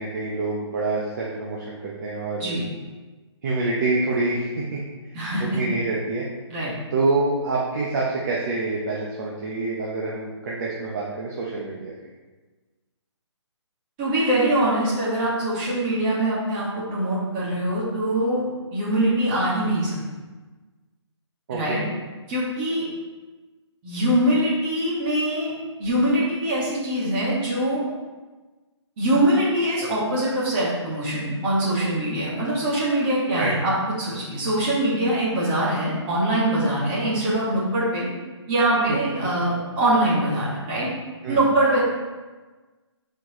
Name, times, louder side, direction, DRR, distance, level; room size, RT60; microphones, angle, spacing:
voice 1, 0.0-2.6 3.4-4.8 5.4-6.3 6.9-11.9 21.5-21.8 33.4-33.5 38.9-39.0 41.2-41.4, right 3 dB, 35° right, -4 dB, 1.0 m, -26 dB
voice 2, 5.1-5.6 6.5-6.7 14.0-18.4 18.7-20.0 21.5-21.8 22.3-22.8 23.8-25.5 25.8-27.8 29.0-33.7 34.0-38.1 38.5-40.9 41.3-41.8, right 1 dB, 20° right, -7 dB, 2.0 m, -23 dB
11.0 x 4.6 x 3.1 m, 1.3 s
hypercardioid pair, 160°, 15 cm